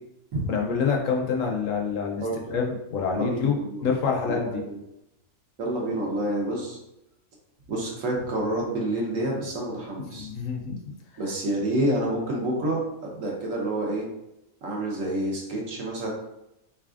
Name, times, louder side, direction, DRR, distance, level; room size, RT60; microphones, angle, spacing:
voice 1, 0.5-2.2 2.5-3.6 3.8-4.6 10.1-10.8, left 5 dB, 70° left, 1 dB, 0.9 m, -26 dB
voice 2, 3.1-3.9 4.2-4.8 5.6-6.8 7.7-10.3 11.2-14.1 14.6-16.1, right 1 dB, 65° right, -2 dB, 1.3 m, -28 dB
3.7 x 3.3 x 2.4 m, 0.86 s
omnidirectional pair, 1.5 m